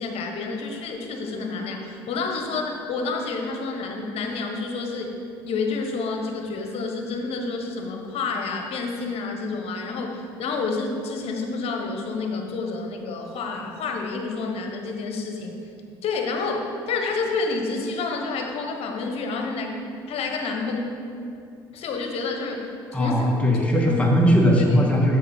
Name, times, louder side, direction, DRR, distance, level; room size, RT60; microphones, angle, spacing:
voice 1, 0.0-5.1 5.4-15.6 16.0-19.8 20.1-21.0 21.7-22.7 22.9-23.3 23.9-24.0 24.5-24.9, left 4 dB, 60° left, 2 dB, 1.3 m, -29 dB
voice 2, 22.9-25.2, equal, 10° left, -2 dB, 1.9 m, -19 dB
7.9 x 6.9 x 4.5 m, 2.5 s
hypercardioid pair, 65°, 11 cm